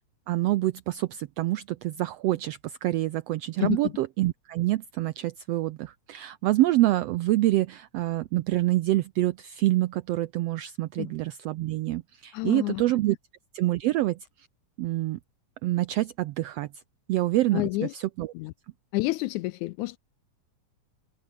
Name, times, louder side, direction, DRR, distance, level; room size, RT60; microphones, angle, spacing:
voice 1, 0.3-13.2 13.5-14.5 14.8-15.2 15.6-16.7 17.1-18.3, right 16 dB, 85° right, 1.4 m, -26 dB
voice 2, 3.6-3.9 11.0-11.1 12.3-12.8 17.5-17.9 18.3-18.5 18.9-20.0, left 20 dB, 80° left, 1.9 m, -29 dB
omnidirectional pair, 3.5 m